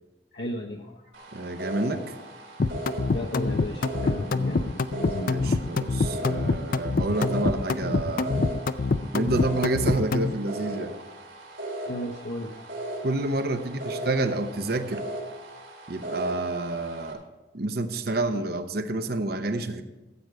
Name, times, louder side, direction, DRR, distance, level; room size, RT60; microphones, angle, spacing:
voice 1, 0.3-1.5 3.1-5.6 11.9-12.9, left 1 dB, 60° left, 0 dB, 0.8 m, -36 dB
sound 1, 1.1-17.1, right 1 dB, 80° right, 3.1 m, -38 dB
voice 2, 1.3-2.0 5.2-8.4 9.1-10.9 13.0-15.0 15.9-17.2 17.5-19.8, right 2 dB, 50° right, 9 dB, 0.8 m, -28 dB
sound 2, 2.6-10.3, left 3 dB, 45° left, 0.4 m, -25 dB
15.0 x 8.0 x 4.8 m, 1.1 s
head